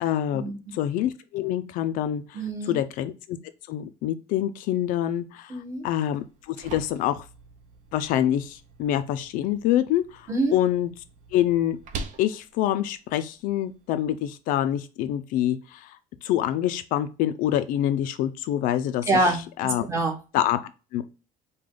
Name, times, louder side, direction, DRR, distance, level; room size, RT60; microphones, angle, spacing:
voice 1, 0.0-2.4 2.7-3.4 3.7-7.3 7.9-10.9 11.3-11.8 12.2-19.1 19.6-19.8 20.3-21.0, left 12 dB, 60° left, 11 dB, 0.4 m, -26 dB
voice 2, 2.3-2.8 5.5-5.8 10.3-10.6 19.1-20.2, right 2 dB, 20° right, 3 dB, 0.9 m, -26 dB
sound 1, 6.1-14.1, right 4 dB, 50° right, 0.6 m, -44 dB
5.0 x 2.3 x 3.6 m, 0.32 s
cardioid pair, 180°, 16 cm